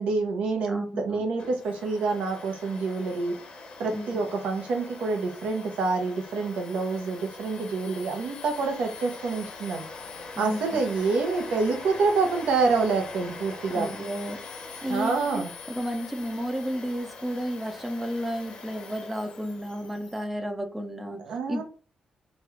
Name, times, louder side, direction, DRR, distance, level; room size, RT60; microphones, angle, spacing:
voice 1, 0.0-3.3 3.8-9.8 10.4-13.9 14.9-15.5 21.3-21.6, right 4 dB, 80° right, 4 dB, 0.8 m, -27 dB
voice 2, 0.6-1.2 3.9-4.3 10.4-10.8 13.7-14.4 14.8-21.2 21.5-21.6, equal, 10° right, 6 dB, 0.4 m, -32 dB
Domestic sounds home sounds, 1.4-20.3, left 4 dB, 55° left, 0.7 m, -42 dB
3.0 x 2.3 x 3.0 m, 0.37 s
wide cardioid pair, 155°, 2 cm